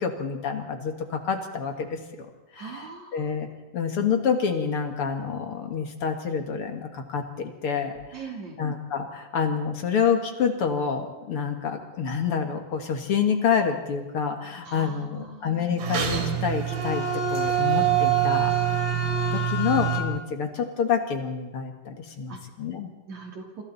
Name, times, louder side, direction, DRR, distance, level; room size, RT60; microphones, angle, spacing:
voice 1, 0.0-2.3 2.5-3.5 3.7-8.2 8.6-22.9, left 6 dB, 45° left, 5 dB, 2.2 m, -28 dB
voice 2, 2.6-3.3 8.1-8.6 14.6-15.4 22.3-22.4 23.1-23.6, right 4 dB, 50° right, 0 dB, 4.6 m, -40 dB
sound 1, 15.8-20.0, right 8 dB, 80° right, 4.3 m, -24 dB
27.5 x 25.0 x 4.2 m, 1.1 s
omnidirectional pair, 4.1 m